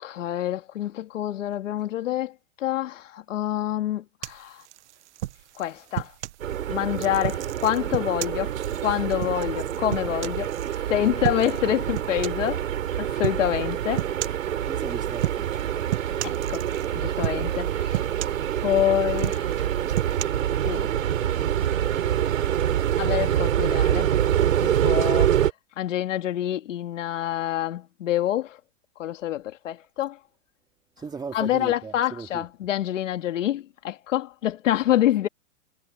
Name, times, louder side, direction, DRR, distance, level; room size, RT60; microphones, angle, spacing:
voice 1, 0.0-2.3 2.6-4.6 5.6-6.1 6.7-8.5 8.8-10.5 10.9-12.6 13.0-14.1 16.2-16.7 16.9-18.0 18.6-19.5 20.6-20.9 23.0-24.1 24.6-25.5 25.8-28.6 29.0-30.2 31.3-35.3, left 12 dB, 75° left, 2.6 m, -26 dB
sound 1, 4.2-6.4 7.0-10.8 11.2-11.6 11.9-12.5 13.2-13.5 14.0-14.5 15.1-15.6 15.9-16.9 17.2-17.6 17.9-18.8 19.1-20.2, right 15 dB, 60° right, 1.2 m, -32 dB
sound 2, 6.4-25.5, right 10 dB, 85° right, 4.6 m, -26 dB
voice 2, 14.7-15.8 31.0-32.4, right 5 dB, 10° right, 3.0 m, -37 dB
hypercardioid pair, 150°, 38 cm